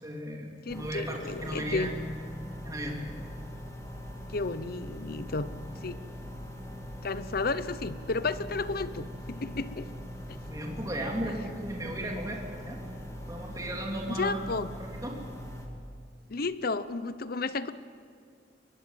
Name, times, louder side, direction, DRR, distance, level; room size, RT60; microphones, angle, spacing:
voice 1, 0.0-2.0 2.6-3.0 10.5-12.8 13.3-14.4 14.8-15.2, right 1 dB, 20° right, -1 dB, 3.4 m, -35 dB
voice 2, 0.7-1.9 4.3-5.5 5.8-6.1 7.0-9.9 10.3-10.4 14.1-14.7 16.3-17.7, left 3 dB, 55° left, 14 dB, 0.9 m, -32 dB
sound 1, 0.7-15.7, equal, 20° left, 2.8 m, -41 dB
23.5 x 21.5 x 7.7 m, 2.2 s
head